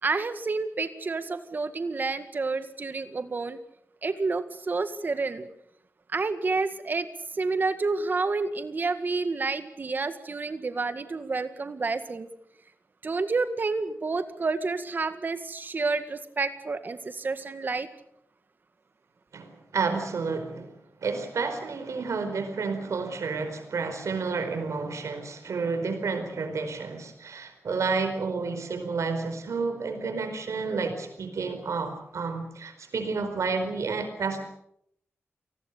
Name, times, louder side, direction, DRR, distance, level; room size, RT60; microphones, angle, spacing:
voice 1, 0.0-3.6 4.0-5.5 6.1-7.1 7.3-12.3 13.0-17.9, right 3 dB, 40° right, 10 dB, 1.9 m, -29 dB
voice 2, 19.3-20.7 21.0-34.4, right 4 dB, 85° right, 7 dB, 4.6 m, -30 dB
29.0 x 20.0 x 6.8 m, 0.75 s
wide cardioid pair, 180°, 5 cm